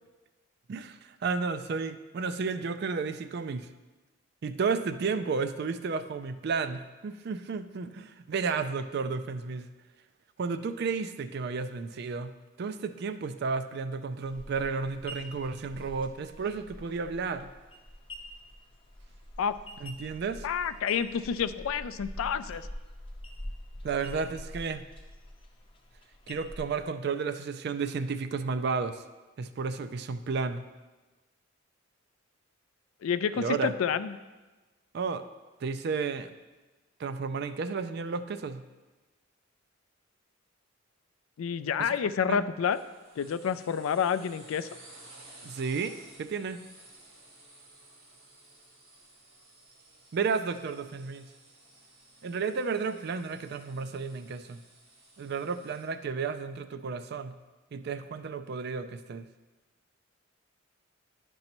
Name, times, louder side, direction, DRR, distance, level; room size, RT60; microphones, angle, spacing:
voice 1, 0.7-3.7 4.4-9.7 10.4-12.3 12.6-17.5 19.8-20.5 23.8-24.8 26.3-29.0 29.4-30.6 33.4-33.7 34.9-35.2 35.6-36.3 37.0-38.6 41.8-41.9 42.3-42.4 45.4-46.6 50.1-51.3 52.2-54.6 55.2-57.3 57.7-59.3, right 5 dB, 50° right, 10 dB, 0.4 m, -32 dB
sound 1, 14.2-26.8, left 1 dB, 25° left, 0.6 m, -45 dB
voice 2, 20.4-22.7 33.0-34.2 41.4-42.8 43.2-44.7, left 7 dB, 80° left, 13 dB, 0.3 m, -29 dB
sound 2, 42.6-55.8, right 2 dB, 85° right, 1.6 m, -55 dB
10.5 x 5.3 x 3.0 m, 1.2 s
head